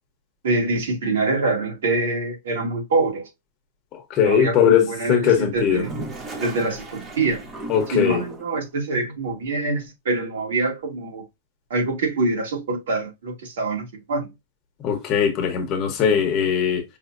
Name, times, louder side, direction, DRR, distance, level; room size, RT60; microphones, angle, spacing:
voice 1, 0.4-3.3 4.2-5.9 6.4-7.5 7.9-11.2 11.7-14.3, right 3 dB, 85° right, 2.2 m, -25 dB
voice 2, 3.9-5.9 7.7-8.2 14.8-16.8, left 8 dB, 25° left, 1.0 m, -20 dB
Toilet flush, 5.5-8.6, right 2 dB, 15° right, 0.7 m, -36 dB
5.5 x 2.7 x 2.5 m
supercardioid pair, 170°, 0 cm